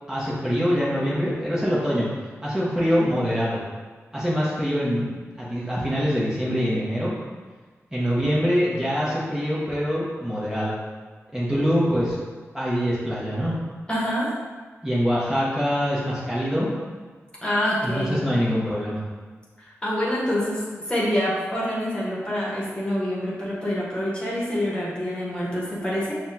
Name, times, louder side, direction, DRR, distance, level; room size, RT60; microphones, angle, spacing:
voice 1, 0.1-2.1 2.4-3.6 4.1-5.1 5.4-7.1 7.9-10.7 11.3-12.2 12.5-13.5 14.8-16.7 17.8-19.0, equal, 10° right, -8 dB, 1.1 m, -24 dB
voice 2, 13.9-14.3 17.4-18.2 19.6-26.2, equal, 20° left, -6 dB, 1.3 m, -26 dB
5.7 x 2.4 x 2.8 m, 1.4 s
cardioid pair, 55°, 5 cm